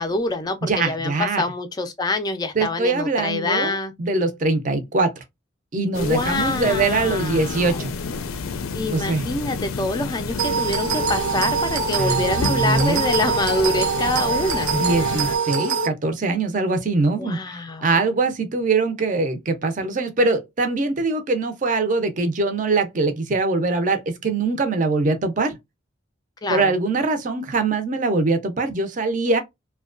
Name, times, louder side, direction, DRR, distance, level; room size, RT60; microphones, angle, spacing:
voice 1, 0.0-3.9 6.0-7.8 8.7-14.7 17.2-18.0 26.4-26.7, left 2 dB, 20° left, 0.3 m, -26 dB
voice 2, 0.6-1.4 2.6-5.2 5.7-7.9 8.9-9.3 12.0-12.2 12.5-13.0 14.7-25.5 26.5-29.4, right 3 dB, 40° right, 0.5 m, -22 dB
sound 1, 5.9-15.4, left 4 dB, 90° left, 0.4 m, -30 dB
sound 2, 10.4-15.9, right 6 dB, 85° right, 0.6 m, -24 dB
2.7 x 2.2 x 2.4 m
head